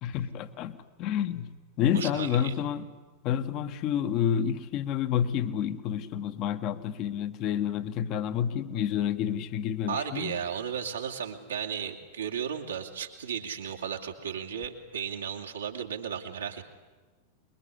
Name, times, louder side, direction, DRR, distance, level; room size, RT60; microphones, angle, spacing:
voice 1, 0.0-2.9 3.2-10.4, left 9 dB, 40° left, 10 dB, 1.4 m, -29 dB
voice 2, 1.9-2.5 9.9-16.6, right 7 dB, 70° right, 2 dB, 2.8 m, -34 dB
25.0 x 22.5 x 9.9 m, 1.3 s
figure-of-eight pair, 90°, 0 cm